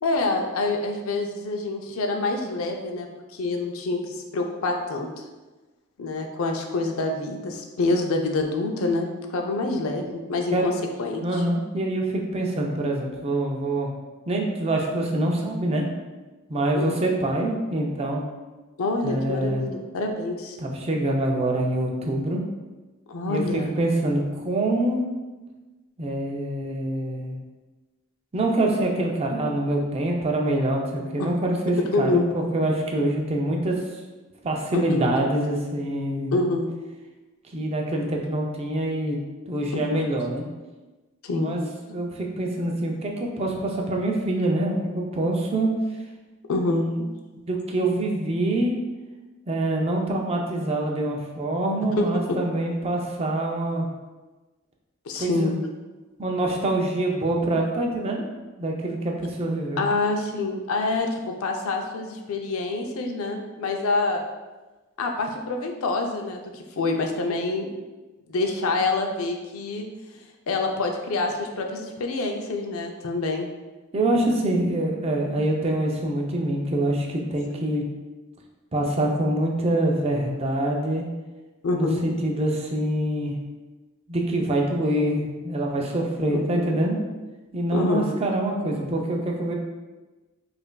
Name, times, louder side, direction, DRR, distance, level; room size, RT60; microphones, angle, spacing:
voice 1, 0.0-3.1 3.3-5.1 6.0-10.7 11.0-11.4 16.7-17.0 18.8-20.6 23.1-23.7 31.2-31.3 31.9-32.2 34.7-35.3 36.3-36.7 39.7-40.0 41.2-41.6 46.5-46.8 52.0-52.4 55.1-55.6 59.8-64.2 65.0-67.7 68.3-69.8 70.5-73.5 81.6-82.0 86.3-86.6 87.7-88.1, left 3 dB, 80° left, 3 dB, 0.5 m, -26 dB
voice 2, 11.2-13.9 14.3-15.9 16.5-18.2 19.0-19.7 20.6-22.4 23.3-25.0 26.0-27.4 28.3-33.8 34.4-36.4 37.5-39.2 39.5-40.4 41.3-41.6 41.9-45.7 46.7-47.0 47.5-48.7 49.5-53.9 55.2-55.5 56.2-58.3 58.6-59.8 73.9-77.8 78.7-81.1 81.7-83.4 84.1-87.0 87.5-89.5, right 1 dB, 30° right, 0 dB, 0.4 m, -25 dB
5.1 x 2.5 x 2.2 m, 1.2 s
head